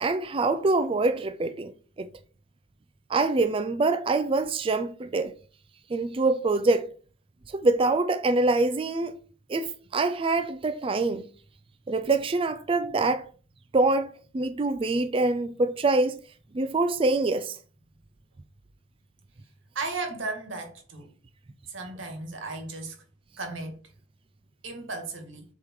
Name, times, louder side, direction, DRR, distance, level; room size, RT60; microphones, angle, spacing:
voice 1, 0.0-1.7 2.0-2.1 3.1-5.3 5.9-6.9 7.5-9.1 9.5-11.3 11.9-13.3 13.7-16.2 16.5-17.6, right 3 dB, 30° right, 0.4 m, -25 dB
voice 2, 19.7-21.1 21.7-23.0 23.4-23.8 24.6-25.4, right 3 dB, 85° right, 2.2 m, -35 dB
7.8 x 3.7 x 4.6 m
head